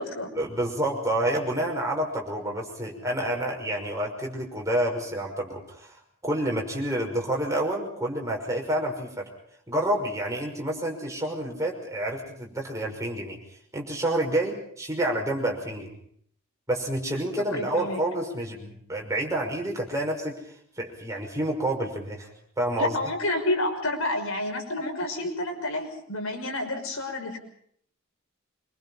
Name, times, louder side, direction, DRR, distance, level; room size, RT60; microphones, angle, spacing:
voice 1, 0.4-9.3 9.7-13.4 13.7-15.9 16.7-20.3 20.8-22.3 22.6-23.0, right 1 dB, 15° right, 0 dB, 5.8 m, -29 dB
voice 2, 17.5-18.0 22.8-27.4, left 1 dB, 85° left, 3 dB, 6.0 m, -29 dB
26.0 x 24.0 x 5.7 m, 0.64 s
head